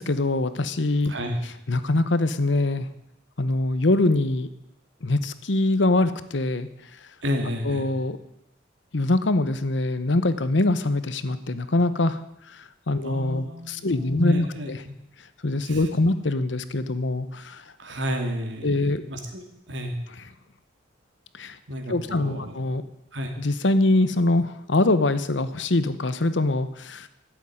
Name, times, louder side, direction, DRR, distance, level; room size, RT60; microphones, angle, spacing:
voice 1, 0.0-1.1 1.7-2.9 3.4-4.5 5.0-6.7 7.6-8.2 8.9-12.2 12.5-14.8 15.4-17.6 18.6-19.0 21.4-21.6 21.9-22.8 23.4-27.1, left 2 dB, 70° left, 13 dB, 1.0 m, -23 dB
voice 2, 1.1-1.4 7.2-7.9 13.0-14.9 15.6-15.9 17.8-20.0 21.7-22.6 23.1-23.3, equal, 70° right, 4 dB, 2.5 m, -32 dB
12.0 x 8.2 x 9.8 m, 0.86 s
head